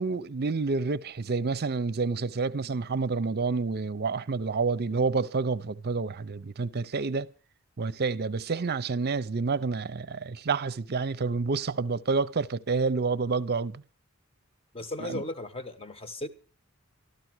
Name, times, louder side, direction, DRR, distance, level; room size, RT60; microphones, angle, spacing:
voice 1, 0.0-7.3 7.8-13.8 15.0-15.2, right 4 dB, 45° right, 0.6 m, -29 dB
voice 2, 14.7-16.3, left 2 dB, 25° left, 1.1 m, -36 dB
13.0 x 13.0 x 6.2 m
head